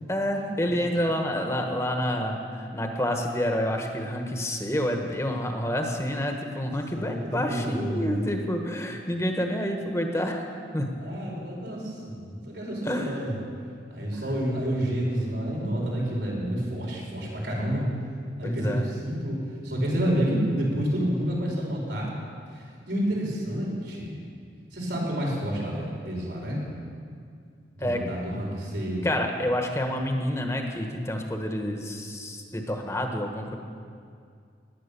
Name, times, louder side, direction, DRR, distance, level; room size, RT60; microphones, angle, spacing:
voice 1, 0.1-10.9 12.8-13.2 18.4-18.8 27.8-28.0 29.0-33.6, equal, 15° left, 3 dB, 1.2 m, -28 dB
voice 2, 6.9-8.2 10.9-13.4 13.9-17.9 18.4-19.4 19.6-22.1 22.5-24.2 24.7-26.6 27.7-29.1, equal, 90° right, -4 dB, 5.1 m, -29 dB
17.0 x 10.5 x 6.9 m, 2.3 s
head